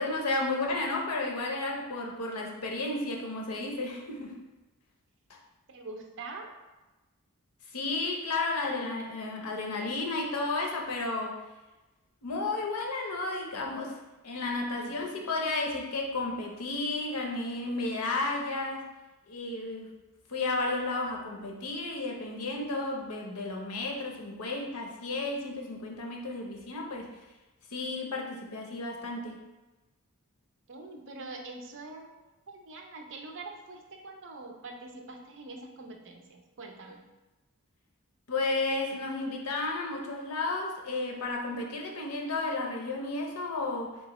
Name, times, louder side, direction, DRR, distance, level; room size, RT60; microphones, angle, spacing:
voice 1, 0.0-4.4 5.3-5.4 7.7-11.4 12.2-14.0 14.2-18.9 19.3-19.9 20.3-27.1 27.7-29.4 38.3-44.0, left 2 dB, 85° left, 1 dB, 0.7 m, -32 dB
voice 2, 5.7-6.5 14.8-14.9 30.7-32.1 32.5-37.0, right 3 dB, 60° right, 3 dB, 0.6 m, -44 dB
3.9 x 3.8 x 3.0 m, 1.1 s
head